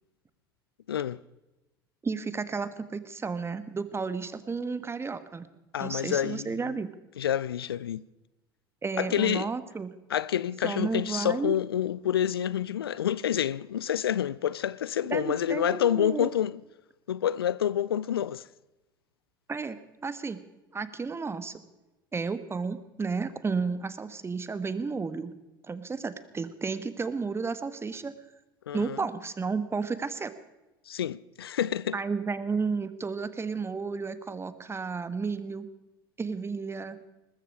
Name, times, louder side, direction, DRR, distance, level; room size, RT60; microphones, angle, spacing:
voice 1, 0.9-1.2 5.7-6.7 7.2-8.0 9.0-9.5 10.1-16.5 17.1-18.5 28.7-29.0 30.9-32.0, left 10 dB, 85° left, 0.4 m, -28 dB
voice 2, 2.0-5.5 5.8-6.9 8.8-9.9 10.6-11.6 15.1-16.3 19.5-19.8 20.0-20.4 20.7-21.6 22.1-25.3 25.7-28.1 28.7-30.3 31.9-35.7 36.2-37.0, right 4 dB, 20° right, 1.4 m, -32 dB
20.0 x 14.5 x 4.8 m
hypercardioid pair, 70°, 12 cm